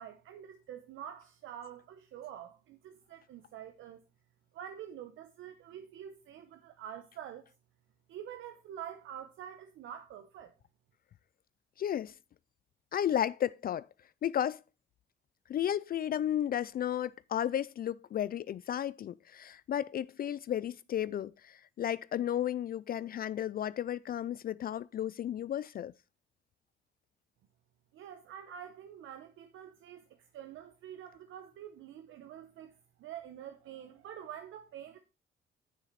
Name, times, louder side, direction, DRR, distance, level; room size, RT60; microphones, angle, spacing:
voice 1, 0.0-4.0 4.5-7.5 8.1-10.5 27.9-35.0, right 9 dB, 80° right, 0.9 m, -47 dB
voice 2, 11.8-12.1 12.9-13.9 14.2-14.6 15.5-25.9, left 10 dB, 50° left, 0.4 m, -33 dB
9.2 x 7.4 x 4.0 m
cardioid pair, 90°, 20 cm